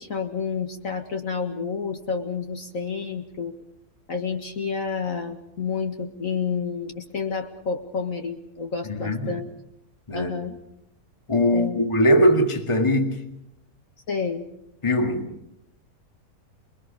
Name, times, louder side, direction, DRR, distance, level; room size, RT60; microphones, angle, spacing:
voice 1, 0.0-3.5 4.1-9.5 10.1-10.6 11.5-11.8 14.1-14.4, left 5 dB, 50° left, 2.2 m, -29 dB
voice 2, 8.9-9.3 10.1-10.3 11.3-13.3 14.8-15.3, equal, 15° left, 2.0 m, -21 dB
28.0 x 22.0 x 5.4 m
omnidirectional pair, 1.8 m